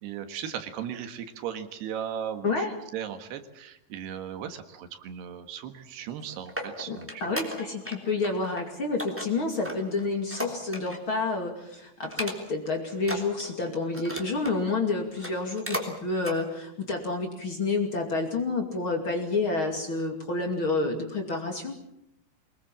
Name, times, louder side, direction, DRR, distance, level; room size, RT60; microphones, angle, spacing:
voice 1, 0.0-7.4, right 9 dB, 80° right, 8 dB, 3.6 m, -37 dB
sound 1, 6.0-8.0 8.2-8.6 9.0-11.1 11.5-11.6 12.0-12.7 13.0-14.6 15.1-15.9 16.2-16.4 16.9-17.0, equal, 5° right, 2.4 m, -36 dB
voice 2, 6.9-21.8, left 3 dB, 35° left, 3 dB, 2.7 m, -29 dB
24.5 x 21.0 x 7.5 m, 0.82 s
omnidirectional pair, 4.7 m